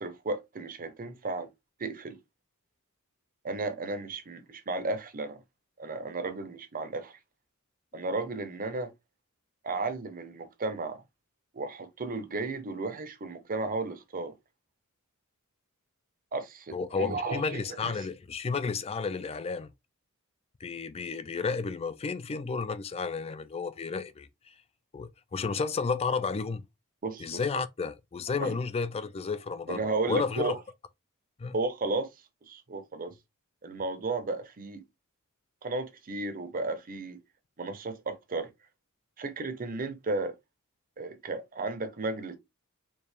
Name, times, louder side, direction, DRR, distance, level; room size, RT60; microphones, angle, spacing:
voice 1, 0.0-1.5 1.8-2.2 3.4-5.4 5.8-7.2 7.9-8.9 9.6-11.0 11.5-14.3 16.3-18.0 27.0-27.4 28.4-28.6 29.7-30.6 31.5-32.1 32.5-33.1 33.6-34.8 35.6-37.2 37.6-38.5 39.2-40.3 41.0-42.4, right 3 dB, 40° right, 0.7 m, -34 dB
voice 2, 16.7-19.7 20.6-24.3 24.9-26.6 27.2-29.8 30.1-30.5 31.4-31.6, left 4 dB, 25° left, 0.3 m, -32 dB
4.5 x 2.4 x 3.4 m
head